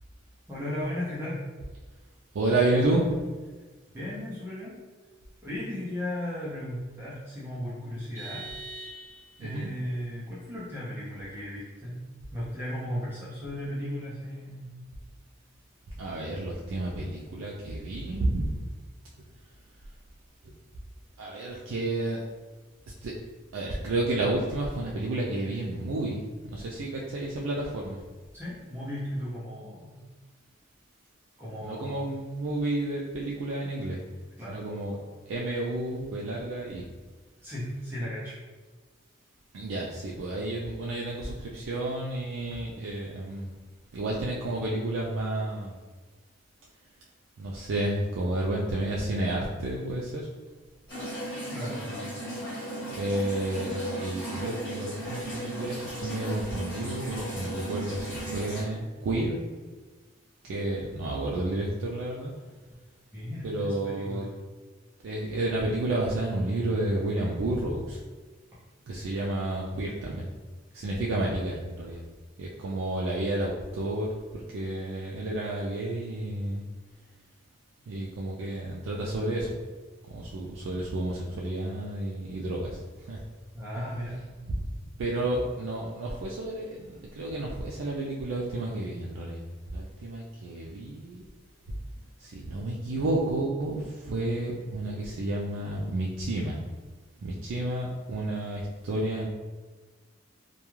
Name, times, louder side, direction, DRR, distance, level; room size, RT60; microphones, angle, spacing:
voice 1, 0.5-1.4 3.9-4.8 5.4-8.5 9.4-12.0 12.3-14.7 28.3-30.0 31.4-32.1 34.4-34.6 37.4-38.4 51.5-52.1 63.1-64.3 83.5-84.2, left 1 dB, 10° right, -9 dB, 0.5 m, -36 dB
voice 2, 2.3-3.1 9.4-9.7 16.0-18.6 21.2-22.2 23.0-23.1 23.5-28.0 31.6-34.0 34.5-35.0 35.3-36.8 39.5-43.5 43.9-45.7 47.4-50.3 52.9-59.4 60.4-62.3 63.4-64.3 65.0-68.0 68.9-70.3 70.7-72.0 72.4-74.1 74.5-76.6 77.9-79.5 80.1-83.2 83.8-83.9 84.5-84.7 85.0-91.3 92.2-96.6 97.2-99.3, right 1 dB, 85° right, -3 dB, 0.4 m, -31 dB
Vehicle horn car horn honking, 8.1-9.5, right 3 dB, 50° left, 0.8 m, -42 dB
sound 1, 50.9-58.6, right 1 dB, 20° left, 1.1 m, -36 dB
2.3 x 2.2 x 3.0 m, 1.3 s
head